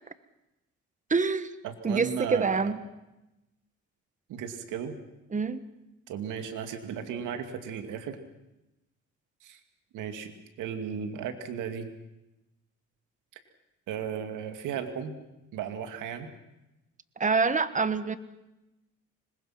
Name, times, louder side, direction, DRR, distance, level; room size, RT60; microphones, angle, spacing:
voice 1, 1.1-1.5 1.8-2.8 5.3-5.6 17.2-18.2, right 4 dB, 25° right, 13 dB, 1.3 m, -26 dB
voice 2, 1.6-2.7 4.3-5.0 6.1-8.2 9.4-9.6 9.9-10.3 10.6-11.9 13.9-15.2 15.5-16.3, right 8 dB, 90° right, 7 dB, 2.4 m, -35 dB
25.5 x 21.0 x 5.9 m, 0.95 s
cardioid pair, 90°, 30 cm